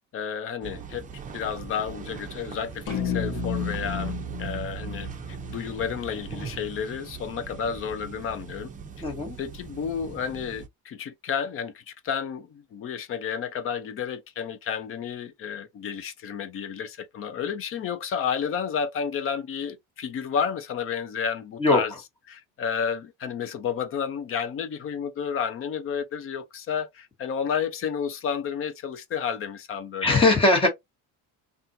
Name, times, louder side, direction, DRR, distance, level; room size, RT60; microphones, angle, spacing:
voice 1, 0.1-1.1 1.3-8.7 9.4-21.9 22.3-30.3, left 7 dB, 40° left, 0.7 m, -31 dB
sound 1, 0.6-10.7, right 6 dB, 25° right, 0.7 m, -41 dB
sound 2, 2.9-7.3, left 3 dB, 75° left, 1.3 m, -33 dB
voice 2, 9.0-9.4 21.6-21.8 30.0-30.7, left 2 dB, 15° left, 1.5 m, -20 dB
4.1 x 2.6 x 2.7 m
cardioid pair, 150°, 33 cm